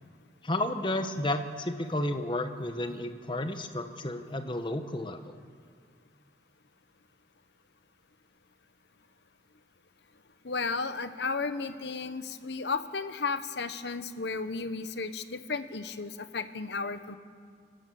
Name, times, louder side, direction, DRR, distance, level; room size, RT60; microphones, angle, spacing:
voice 1, 0.4-5.3, left 1 dB, 25° left, 8 dB, 1.1 m, -32 dB
voice 2, 10.4-17.2, left 4 dB, 65° left, 11 dB, 1.0 m, -34 dB
29.5 x 12.0 x 7.8 m, 2.1 s
head